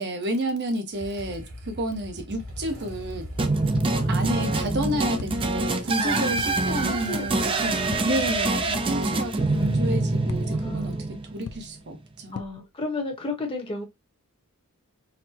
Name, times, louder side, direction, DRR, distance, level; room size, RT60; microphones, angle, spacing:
voice 1, 0.0-3.3 4.1-7.8 8.0-12.4, right 1 dB, 50° right, 0.9 m, -30 dB
Motorcycle / Engine starting, 0.9-9.8, equal, 80° right, 2.0 m, -39 dB
sound 1, 3.4-11.6, right 2 dB, 25° right, 0.4 m, -25 dB
sound 2, 3.8-4.3 5.1-5.7 6.3-7.0 7.9-8.4 8.7-8.8 10.3-10.8 11.5-12.0 12.3-12.8, left 5 dB, 80° left, 0.5 m, -41 dB
voice 2, 3.9-4.5 6.0-6.4 7.1-7.2 7.5-7.7 10.4-10.9 12.3-13.8, left 2 dB, 25° left, 1.0 m, -34 dB
4.1 x 2.1 x 2.8 m
head